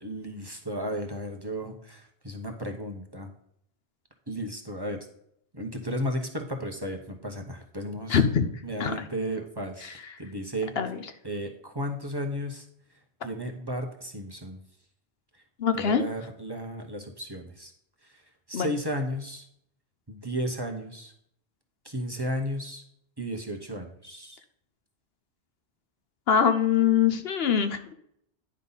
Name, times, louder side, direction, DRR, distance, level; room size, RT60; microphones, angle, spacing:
voice 1, 0.0-3.3 4.3-5.1 5.5-8.2 8.6-10.7 11.2-12.7 13.2-14.6 15.7-17.7 18.0-18.2 18.5-19.5 20.1-21.1 21.8-22.8 23.2-24.4, equal, 25° right, 2 dB, 1.0 m, -34 dB
voice 2, 8.1-8.5 8.8-8.9 9.8-9.9 10.8-11.0 15.6-16.0 18.5-18.7 26.3-27.9, left 7 dB, 65° left, 9 dB, 1.0 m, -23 dB
9.8 x 5.4 x 4.0 m, 0.71 s
omnidirectional pair, 1.1 m